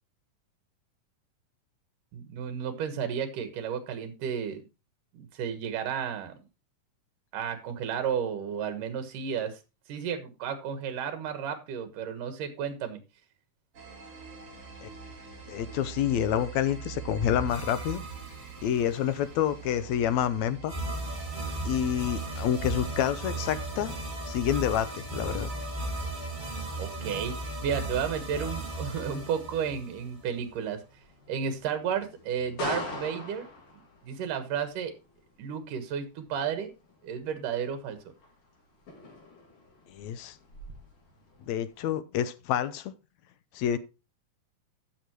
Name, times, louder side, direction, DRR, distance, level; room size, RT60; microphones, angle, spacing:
voice 1, 2.1-4.6 5.1-6.4 7.3-9.6 9.9-13.0 26.8-30.8 31.3-33.5 34.0-34.9 35.4-36.7 37.0-38.0, right 7 dB, 75° right, 2.9 m, -32 dB
sound 1, 13.7-29.2, right 7 dB, 45° right, 4.0 m, -47 dB
voice 2, 15.5-18.0 18.6-20.7 21.6-24.0 24.3-25.5 39.9-40.4 41.5-42.9 43.5-43.8, left 10 dB, 75° left, 1.8 m, -28 dB
sound 2, 17.2-19.0 20.7-30.4, right 2 dB, 15° right, 1.9 m, -36 dB
sound 3, 29.0-41.8, left 2 dB, 50° left, 3.2 m, -45 dB
15.0 x 6.5 x 3.0 m
omnidirectional pair, 3.8 m